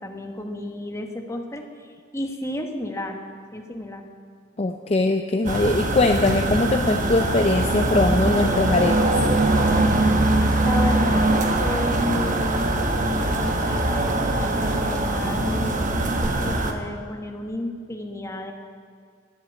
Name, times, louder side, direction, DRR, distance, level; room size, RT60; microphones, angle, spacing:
voice 1, 0.0-1.9 2.1-3.2 3.5-4.0 10.6-18.5, left 1 dB, 15° left, 2 dB, 1.3 m, -32 dB
voice 2, 4.6-9.0, left 2 dB, 30° left, 5 dB, 0.5 m, -21 dB
sound 1, 5.4-16.7, right 2 dB, 40° right, 1.2 m, -22 dB
11.5 x 10.5 x 8.4 m, 2.1 s
head